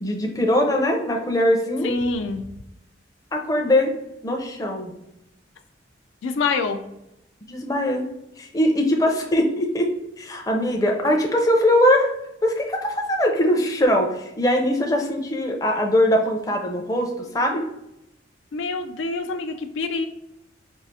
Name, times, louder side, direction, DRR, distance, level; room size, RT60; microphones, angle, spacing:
voice 1, 0.0-1.9 3.3-3.9 4.2-4.9 7.5-8.1 8.4-12.1 12.4-17.6, left 1 dB, 20° left, 2 dB, 0.5 m, -21 dB
voice 2, 1.8-2.4 6.2-6.8 18.5-20.1, left 4 dB, 90° left, 7 dB, 0.4 m, -26 dB
4.6 x 2.4 x 2.6 m, 0.86 s
head